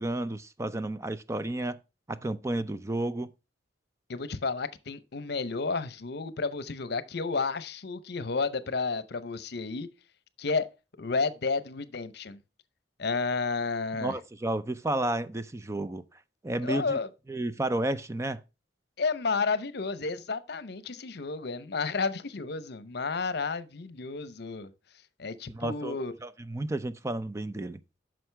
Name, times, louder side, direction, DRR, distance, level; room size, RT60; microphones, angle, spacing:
voice 1, 0.0-1.8 2.1-3.3 14.0-16.0 16.4-17.0 17.3-18.4 25.5-27.8, right 1 dB, 15° right, 0.5 m, -32 dB
voice 2, 4.1-9.9 10.4-10.7 11.0-12.4 13.0-14.1 16.6-17.1 19.0-24.7 25.2-26.1, left 4 dB, 65° left, 0.8 m, -31 dB
9.3 x 6.2 x 3.3 m
head